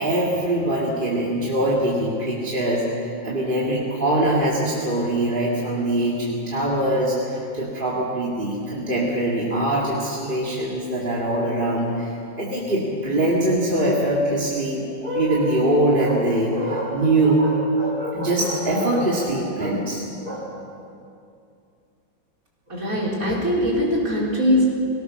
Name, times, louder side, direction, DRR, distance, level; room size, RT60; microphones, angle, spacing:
voice 1, 0.0-20.5, right 1 dB, 25° right, -5 dB, 2.7 m, -23 dB
voice 2, 22.7-24.7, equal, 45° right, -4 dB, 4.8 m, -21 dB
23.0 x 18.0 x 6.6 m, 2.5 s
omnidirectional pair, 2.0 m